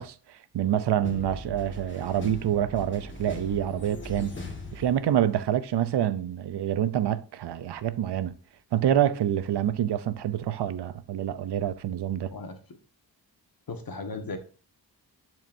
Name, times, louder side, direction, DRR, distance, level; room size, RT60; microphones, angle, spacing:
voice 1, 0.0-4.3 4.7-8.4 8.7-12.3, right 10 dB, 80° right, 0.7 m, -27 dB
sound 1, 1.0-5.5, left 2 dB, 30° left, 1.5 m, -40 dB
voice 2, 13.7-14.4, left 3 dB, 55° left, 1.5 m, -36 dB
10.5 x 4.5 x 2.7 m
cardioid pair, 90°, 41 cm